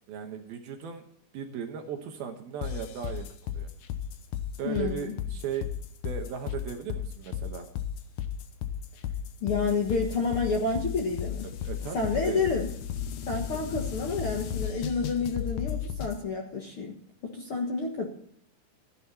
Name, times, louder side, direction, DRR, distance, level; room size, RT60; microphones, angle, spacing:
voice 1, 0.1-1.0 1.3-3.7 4.6-5.7 6.0-7.7 11.6-12.5 13.5-13.6, right 7 dB, 70° right, 4 dB, 2.8 m, -37 dB
sound 1, 2.6-16.2, left 9 dB, 85° left, 1.7 m, -34 dB
voice 2, 4.6-5.2 9.4-11.5 11.9-12.7 13.3-16.9 17.2-18.1, left 4 dB, 70° left, 1 dB, 1.3 m, -29 dB
13.5 x 10.5 x 4.1 m, 0.62 s
omnidirectional pair, 5.0 m